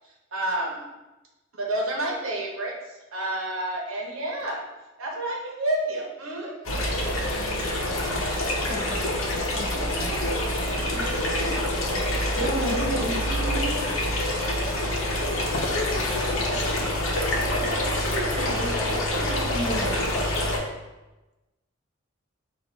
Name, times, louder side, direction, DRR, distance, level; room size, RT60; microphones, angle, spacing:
voice 1, 0.3-0.8 1.5-4.6 5.0-6.8, right 1 dB, 90° right, -1 dB, 1.0 m, -29 dB
sound 1, 6.6-20.6, left 1 dB, 80° left, 0.8 m, -26 dB
voice 2, 8.7-10.5 10.9-11.4 12.3-14.0 17.2-20.0, right 1 dB, 65° right, -4 dB, 1.3 m, -33 dB
voice 3, 15.4-16.9, left 3 dB, 55° left, 3 dB, 0.5 m, -34 dB
4.1 x 2.5 x 4.4 m, 1.1 s
head